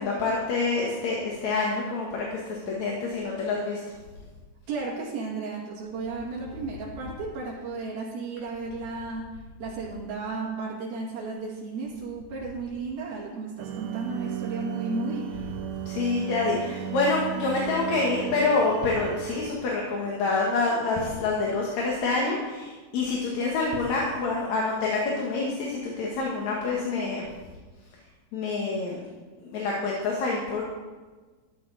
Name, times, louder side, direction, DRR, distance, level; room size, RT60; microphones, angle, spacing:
voice 1, 0.0-3.8 15.9-27.3 28.3-29.0 29.4-30.6, left 3 dB, 60° left, -2 dB, 2.5 m, -27 dB
voice 2, 4.7-9.3 9.6-15.3, right 3 dB, 90° right, -5 dB, 4.1 m, -34 dB
sound 1, 13.6-19.5, right 11 dB, 70° right, 2.2 m, -35 dB
13.5 x 12.0 x 4.1 m, 1.3 s
omnidirectional pair, 4.2 m